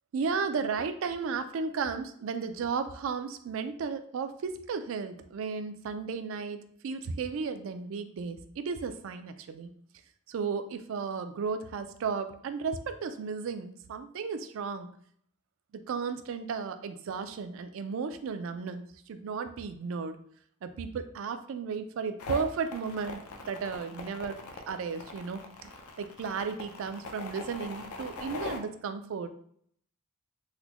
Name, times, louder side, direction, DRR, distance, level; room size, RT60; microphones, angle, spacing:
voice 1, 0.1-9.7 10.3-14.9 15.7-20.2 20.6-23.2 23.5-25.7 26.0-29.3, right 5 dB, 60° right, 9 dB, 0.3 m, -34 dB
sound 1, 22.2-28.6, left 3 dB, 85° left, 0.5 m, -41 dB
3.9 x 2.1 x 2.9 m, 0.63 s
head